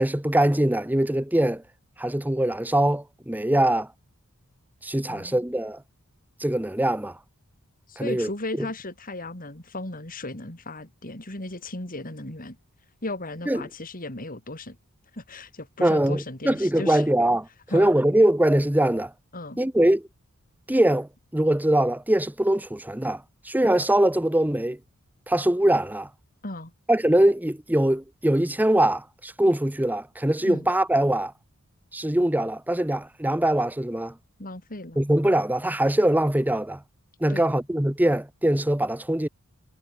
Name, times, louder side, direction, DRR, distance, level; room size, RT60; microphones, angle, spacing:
voice 1, 0.0-1.6 2.0-3.9 4.8-5.8 6.4-7.2 8.0-8.3 8.6-8.7 13.5-13.6 15.8-17.5 17.7-19.1 19.6-20.1 20.7-24.8 25.3-26.1 26.9-31.3 31.9-34.1 35.0-36.8 37.2-39.3, right 1 dB, 10° right, 0.9 m, -22 dB
voice 2, 5.1-5.4 7.9-12.6 13.0-14.8 15.1-17.0 17.7-18.0 19.3-19.6 26.4-26.7 30.4-30.7 34.4-35.0 37.3-37.5, left 2 dB, 40° left, 4.6 m, -36 dB
head